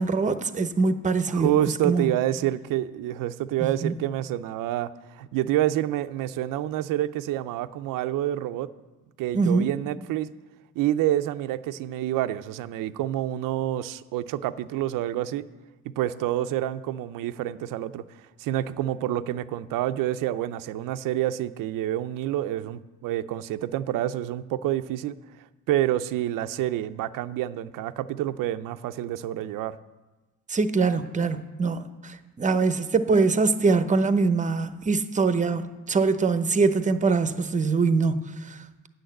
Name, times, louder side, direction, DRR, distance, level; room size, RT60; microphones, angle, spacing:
voice 1, 0.0-1.5 1.8-2.1 3.6-3.9 9.3-9.7 30.5-38.9, right 4 dB, 25° right, 11 dB, 0.7 m, -23 dB
voice 2, 1.3-8.7 9.2-10.3 10.8-15.5 16.0-18.0 18.4-25.2 25.7-29.8, right 13 dB, 80° right, 13 dB, 0.5 m, -28 dB
9.1 x 6.5 x 7.9 m, 1.2 s
cardioid pair, 90°, 33 cm